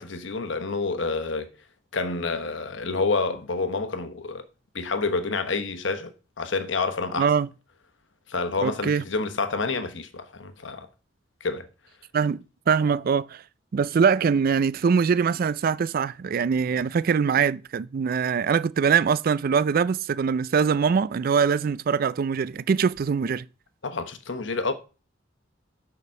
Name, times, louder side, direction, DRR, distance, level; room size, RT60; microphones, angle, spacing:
voice 1, 0.0-1.5 1.9-4.4 4.7-7.3 8.3-10.9 11.4-11.7 23.8-24.7, left 3 dB, 70° left, 1.0 m, -28 dB
voice 2, 7.2-7.5 8.6-9.0 12.1-12.4 12.7-13.4 13.7-23.4, right 6 dB, 50° right, 0.4 m, -23 dB
6.9 x 5.0 x 6.4 m
head